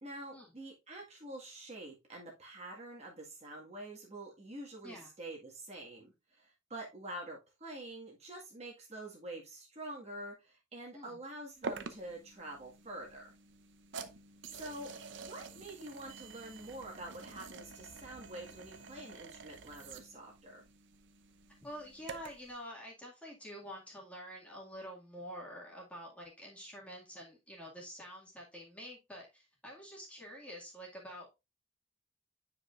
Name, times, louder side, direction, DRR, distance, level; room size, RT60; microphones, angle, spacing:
voice 1, 0.0-13.3 14.5-14.9 15.3-20.6, right 1 dB, 35° right, -1 dB, 1.9 m, -47 dB
sound 1, 11.6-22.5, right 4 dB, 70° right, 0.7 m, -48 dB
voice 2, 21.6-31.3, equal, 5° left, -3 dB, 2.1 m, -48 dB
9.5 x 5.1 x 2.5 m, 0.24 s
head